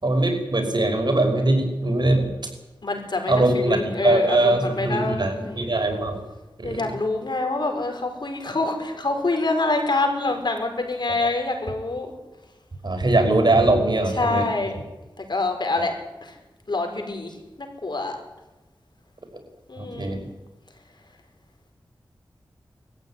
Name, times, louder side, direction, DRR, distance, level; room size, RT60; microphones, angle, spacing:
voice 1, 0.0-2.3 3.3-6.2 6.6-6.9 12.8-14.5 19.8-20.2, right 2 dB, 55° right, 3 dB, 5.6 m, -21 dB
voice 2, 2.8-5.6 6.6-12.1 14.2-14.7 15.2-15.9 16.2-16.3 16.7-18.2 19.7-20.2, left 3 dB, 60° left, 4 dB, 5.1 m, -26 dB
21.0 x 14.5 x 9.9 m, 1.0 s
cardioid pair, 45°, 9 cm